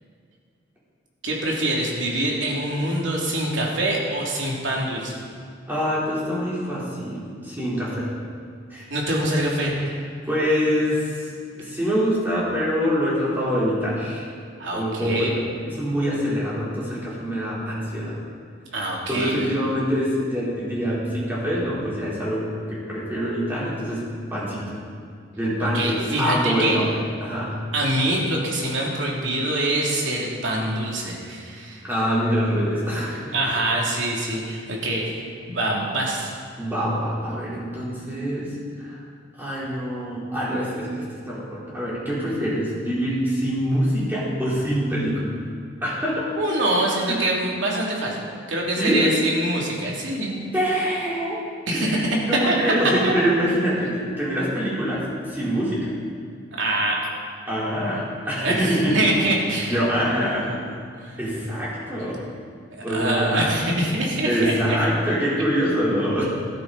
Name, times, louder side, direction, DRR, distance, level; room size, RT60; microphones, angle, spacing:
voice 1, 1.2-5.2 8.9-9.7 14.6-15.3 18.7-19.3 25.6-26.8 27.7-31.8 33.3-36.3 46.4-48.2 48.5-50.3 51.7-52.0 52.5-52.6 53.0-53.1 56.6-57.0 58.4-59.8 60.1-60.5 61.0-61.2 62.7-64.5, right 1 dB, 70° right, -3 dB, 3.0 m, -25 dB
voice 2, 5.7-8.1 8.7-8.9 9.6-9.9 10.3-11.3 11.6-14.3 14.7-18.2 19.1-24.0 24.3-24.8 25.4-27.6 31.8-33.3 36.6-39.0 39.4-45.3 45.8-46.3 47.1-47.3 48.8-49.1 50.5-51.4 51.7-55.9 57.5-59.0 59.5-60.5 61.2-62.3 62.8-63.5 64.2-66.2, equal, 10° right, -8 dB, 4.0 m, -25 dB
14.0 x 13.0 x 4.2 m, 2.2 s
head